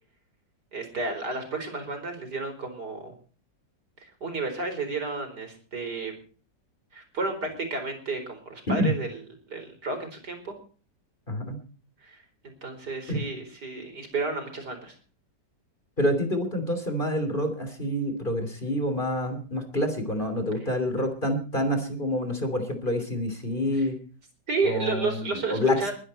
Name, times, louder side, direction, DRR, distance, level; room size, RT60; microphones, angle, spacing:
voice 1, 0.7-3.1 4.0-6.1 6.9-9.2 9.5-10.5 12.0-14.9 24.5-25.9, right 3 dB, 65° right, 6 dB, 5.1 m, -32 dB
voice 2, 11.3-11.6 13.1-13.2 16.0-24.0 24.6-25.9, left 1 dB, 25° left, 7 dB, 3.1 m, -27 dB
22.5 x 10.5 x 4.4 m, 0.39 s
omnidirectional pair, 1.9 m